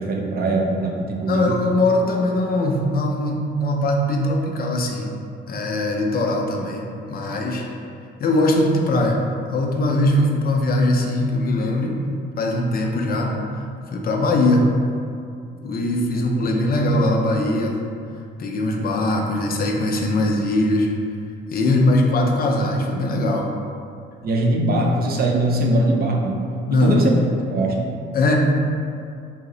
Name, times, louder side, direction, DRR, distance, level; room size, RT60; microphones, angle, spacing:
voice 1, 0.0-1.6 16.1-16.6 24.2-26.4 26.7-27.2 27.5-28.0, right 1 dB, 50° right, 0 dB, 0.5 m, -22 dB
voice 2, 1.2-5.1 5.5-7.7 8.2-9.2 9.5-12.0 12.4-14.7 15.6-17.8 18.4-20.9 21.5-23.5 26.7-27.1 28.1-28.4, left 1 dB, 50° left, 1 dB, 0.4 m, -21 dB
2.7 x 2.0 x 3.7 m, 2.4 s
cardioid pair, 90°, 20 cm